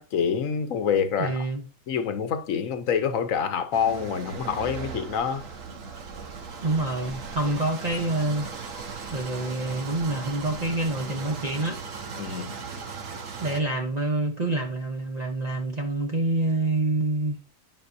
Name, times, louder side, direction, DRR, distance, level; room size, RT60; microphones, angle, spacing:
voice 1, 0.0-1.5 1.9-5.5 12.2-12.6, left 7 dB, 90° left, 1.3 m, -26 dB
voice 2, 1.2-1.6 6.6-8.7 9.1-11.8 13.4-17.4, right 2 dB, 35° right, 0.9 m, -27 dB
sound 1, 3.7-13.6, right 5 dB, 80° right, 1.5 m, -38 dB
11.5 x 5.3 x 2.7 m
omnidirectional pair, 1.3 m